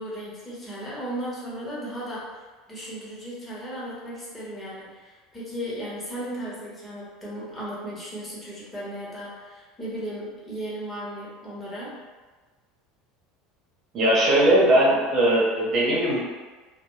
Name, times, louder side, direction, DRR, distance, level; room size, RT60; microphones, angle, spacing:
voice 1, 0.0-2.4 2.7-11.9, equal, 15° left, -7 dB, 1.2 m, -35 dB
voice 2, 13.9-16.2, right 1 dB, 50° right, -6 dB, 1.1 m, -19 dB
2.3 x 2.2 x 3.1 m, 1.3 s
hypercardioid pair, 90°, 0 cm